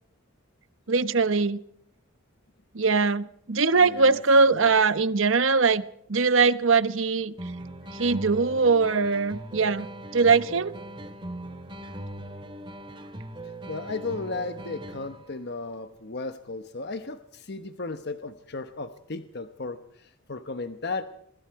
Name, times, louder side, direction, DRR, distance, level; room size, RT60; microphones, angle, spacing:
voice 1, 0.9-1.6 2.7-5.8 6.1-7.3 7.9-9.9 10.1-10.7, right 4 dB, 70° right, 14 dB, 1.0 m, -21 dB
voice 2, 3.7-4.7 13.7-21.0, left 3 dB, 55° left, 9 dB, 1.0 m, -35 dB
sound 1, 7.4-15.3, right 1 dB, 25° right, 2.0 m, -40 dB
26.5 x 24.0 x 4.7 m, 0.72 s
head